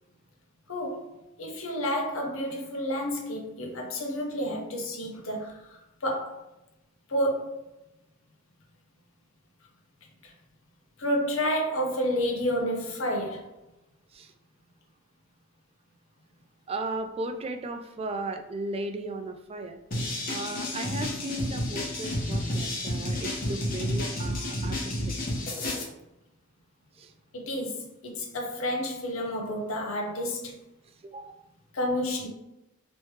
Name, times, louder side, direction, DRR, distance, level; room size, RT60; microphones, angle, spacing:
voice 1, 0.7-6.4 7.1-7.7 10.2-10.3 11.0-13.5 27.3-30.6 31.7-32.3, equal, 70° left, 0.8 m, -30 dB
voice 2, 16.7-19.8 20.3-25.2 27.0-27.1 31.0-31.4, right 2 dB, 30° right, 0.3 m, -36 dB
sound 1, 19.9-25.8, left 1 dB, 45° left, 0.9 m, -31 dB
3.2 x 3.0 x 3.1 m
head